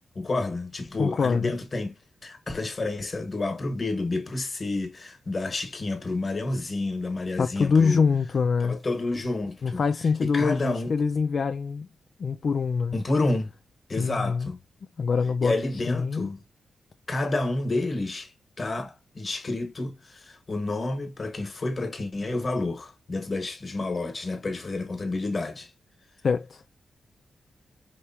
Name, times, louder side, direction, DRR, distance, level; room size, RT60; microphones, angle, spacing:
voice 1, 0.1-8.0 8.6-9.8 10.2-10.9 12.9-13.5 13.9-14.6 15.4-16.4 17.1-25.7, left 2 dB, 40° left, 1.6 m, -30 dB
voice 2, 1.0-1.5 7.4-8.8 9.6-11.9 12.2-13.0 14.0-14.5 15.0-16.3 26.2-26.6, left 5 dB, 55° left, 0.4 m, -24 dB
5.2 x 3.1 x 2.9 m
cardioid pair, 85°, 0 cm